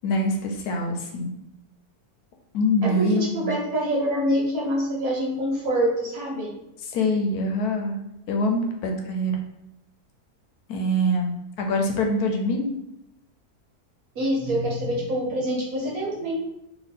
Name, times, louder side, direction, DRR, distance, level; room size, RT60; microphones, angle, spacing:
voice 1, 0.0-1.3 2.5-3.5 6.9-8.0 8.3-9.3 10.7-12.8, left 1 dB, 80° left, 2 dB, 1.2 m, -24 dB
voice 2, 2.8-6.5 14.1-16.4, equal, 65° right, -3 dB, 1.5 m, -25 dB
2.9 x 2.9 x 4.1 m, 0.85 s
omnidirectional pair, 1.7 m